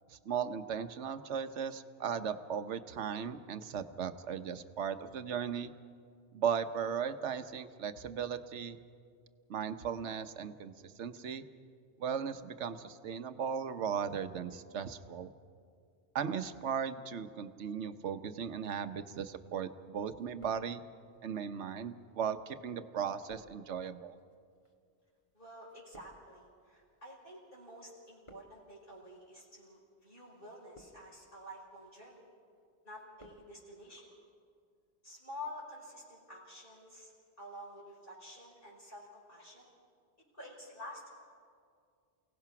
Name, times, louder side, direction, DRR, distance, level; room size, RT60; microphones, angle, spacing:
voice 1, 0.1-5.7 6.3-8.8 9.5-11.4 12.0-15.3 16.1-20.8 21.2-24.2, right 7 dB, 80° right, 10 dB, 1.2 m, -37 dB
sound 1, 19.4-19.8 20.1-21.2 21.9-27.5 27.8-28.8 29.5-29.8 30.5-31.3 31.7-32.2 32.5-33.5 33.7-33.8, equal, 25° left, 1.8 m, -62 dB
voice 2, 25.3-32.2 32.8-34.1 35.0-37.1 37.4-39.7 40.3-41.1, left 1 dB, 50° left, -5 dB, 6.0 m, -49 dB
29.0 x 17.5 x 5.9 m, 2.2 s
omnidirectional pair, 1.2 m